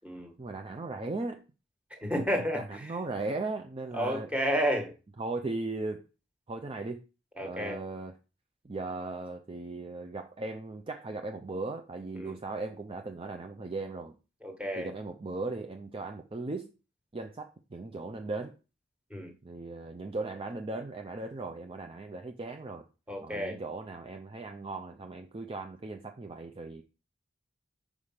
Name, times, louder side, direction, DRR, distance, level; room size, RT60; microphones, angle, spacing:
voice 1, 0.4-1.4 2.5-4.3 5.2-6.1 6.5-7.0 7.4-8.1 8.6-14.2 14.8-16.7 17.1-18.5 19.4-22.9 23.2-26.8, right 3 dB, 30° right, 0.5 m, -37 dB
voice 2, 1.9-2.9 3.9-4.9 7.4-7.8 12.1-12.4 14.4-14.9 19.1-19.3 23.1-23.6, equal, 5° right, 1.5 m, -31 dB
5.0 x 4.9 x 5.7 m
head